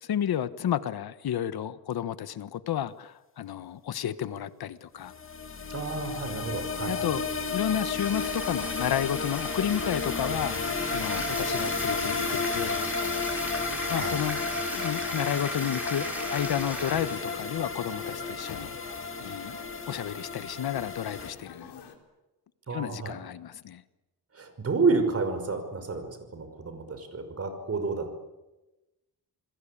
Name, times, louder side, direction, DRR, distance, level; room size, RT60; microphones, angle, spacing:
voice 1, 0.0-5.1 6.9-7.2 7.5-10.6 10.9-12.8 13.9-14.4 14.7-19.6 19.9-21.7 22.7-23.8, left 10 dB, 70° left, 14 dB, 1.4 m, -31 dB
sound 1, 5.1-21.3, left 4 dB, 35° left, 2.4 m, -32 dB
voice 2, 5.7-7.1 13.9-14.2 22.7-23.1 24.3-28.2, right 4 dB, 40° right, 8 dB, 5.6 m, -30 dB
Bathtub (filling or washing), 7.5-17.5, equal, 5° right, 6.8 m, -39 dB
sound 2, 16.1-22.0, left 7 dB, 85° left, 4.2 m, -47 dB
28.5 x 22.0 x 8.7 m, 1.0 s
cardioid pair, 130°, 38 cm